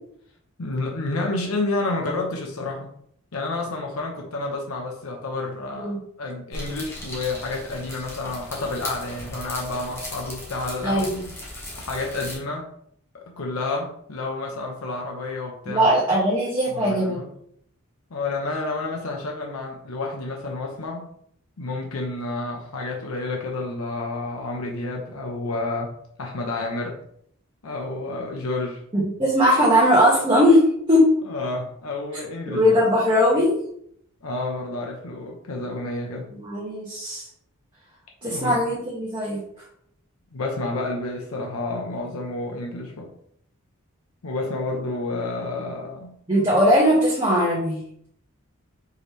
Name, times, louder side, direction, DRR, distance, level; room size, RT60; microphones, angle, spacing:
voice 1, 0.6-2.9 3.3-5.9 6.2-11.0 11.7-12.7 13.1-15.9 16.7-17.3 18.1-21.1 21.6-25.9 26.2-27.0 27.6-28.8 31.3-32.8 34.2-36.3 38.2-38.6 40.3-43.1 44.2-46.1, left 2 dB, 75° left, 0 dB, 0.7 m, -30 dB
sound 1, 6.5-12.4, left 1 dB, 10° left, 1.0 m, -37 dB
voice 2, 10.8-11.2 15.7-17.2 28.9-30.6 30.9-31.1 32.5-33.5 36.3-37.2 38.2-39.4 46.3-47.8, equal, 20° right, -8 dB, 1.1 m, -19 dB
4.7 x 3.0 x 3.3 m, 0.68 s
head